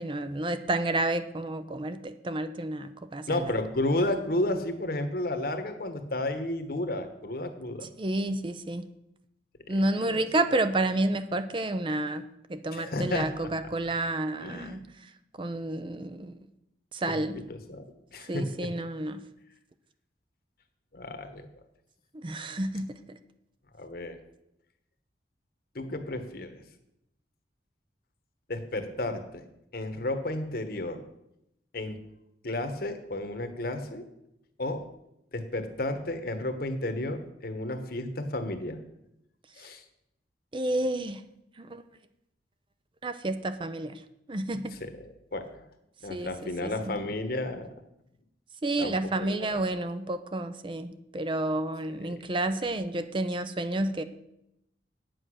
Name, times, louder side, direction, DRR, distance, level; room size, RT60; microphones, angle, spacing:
voice 1, 0.0-3.3 8.0-8.9 9.7-12.2 12.5-14.8 15.4-16.4 16.9-17.4 18.3-19.2 22.1-23.2 40.5-41.2 41.6-41.8 43.0-44.0 44.3-44.8 46.1-46.9 48.6-54.0, right 2 dB, 30° right, 11 dB, 0.5 m, -30 dB
voice 2, 3.3-7.9 9.7-9.8 10.0-10.2 12.7-13.3 14.4-14.8 17.1-17.8 18.1-18.7 20.9-21.5 23.8-24.2 25.7-26.6 28.5-29.4 29.7-31.0 31.7-32.0 32.4-34.0 34.6-34.8 35.3-38.8 39.6-39.8 44.7-44.9 45.3-45.7 46.0-47.7 48.8-49.8 52.1-52.2, left 1 dB, 55° left, 8 dB, 1.2 m, -32 dB
9.0 x 7.9 x 6.3 m, 0.83 s
head